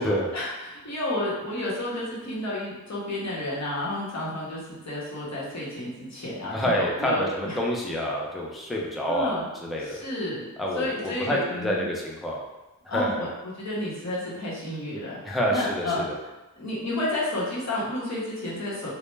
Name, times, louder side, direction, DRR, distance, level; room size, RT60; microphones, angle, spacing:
voice 1, 0.0-7.6 9.1-9.5 9.8-10.4 10.8-11.9 12.9-13.3 13.6-16.1 16.6-18.9, left 1 dB, 50° left, -7 dB, 0.9 m, -31 dB
voice 2, 6.5-10.0 10.6-12.4 12.8-13.3 15.2-16.2, equal, ahead, -3 dB, 0.4 m, -28 dB
2.1 x 2.1 x 3.1 m, 1.1 s
wide cardioid pair, 45°, 35 cm